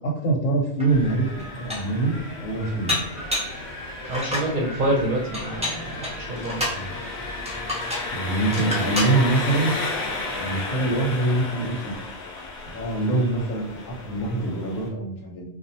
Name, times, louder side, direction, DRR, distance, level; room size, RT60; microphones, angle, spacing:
voice 1, 0.0-1.3 1.6-2.2 2.4-3.0 6.7-6.9 8.1-9.7 10.4-11.9 12.7-15.4, right 2 dB, 85° left, -1 dB, 1.1 m, -24 dB
Wind, 0.8-10.7, equal, 20° left, 0.8 m, -40 dB
Dishes pots and pans, 0.8-0.9 1.4-2.0 2.9-3.6 4.0-4.5 5.3-6.8 7.5-8.1 8.5-9.2, left 1 dB, 10° right, 0.5 m, -29 dB
Engine, 0.9-14.9, left 3 dB, 70° left, 0.8 m, -34 dB
voice 2, 4.1-6.7, right 1 dB, 50° right, -1 dB, 0.6 m, -27 dB
2.4 x 2.3 x 2.7 m, 0.78 s
omnidirectional pair, 1.2 m